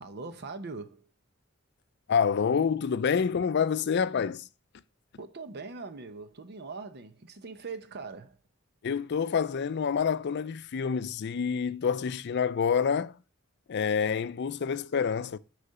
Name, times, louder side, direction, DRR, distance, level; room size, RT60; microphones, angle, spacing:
voice 1, 0.0-1.1 5.2-8.4, right 4 dB, 55° right, 0.8 m, -41 dB
voice 2, 2.1-4.5 8.8-13.2 13.7-15.4, left 6 dB, 55° left, 0.4 m, -27 dB
6.6 x 5.0 x 5.5 m
head